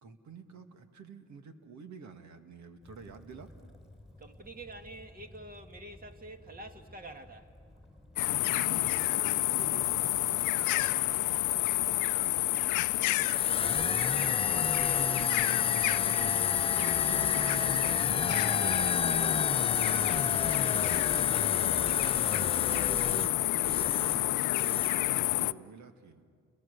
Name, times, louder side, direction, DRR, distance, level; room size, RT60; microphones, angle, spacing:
voice 1, 0.0-3.5 8.5-11.5 14.5-18.3 20.1-21.1 21.7-26.2, right 4 dB, 70° right, 2.1 m, -49 dB
Waves surf / Splash splatter / Trickle dribble, 2.8-8.6, left 1 dB, ahead, 4.2 m, -55 dB
voice 2, 4.2-7.5 13.0-14.8 18.5-19.5 20.3-21.2, right 2 dB, 30° right, 2.1 m, -48 dB
sound 1, 8.2-25.5, left 17 dB, 80° left, 0.6 m, -28 dB
sound 2, 13.3-24.3 24.5-25.0, left 4 dB, 20° left, 0.8 m, -33 dB
30.0 x 22.0 x 6.8 m
cardioid pair, 90°, 30 cm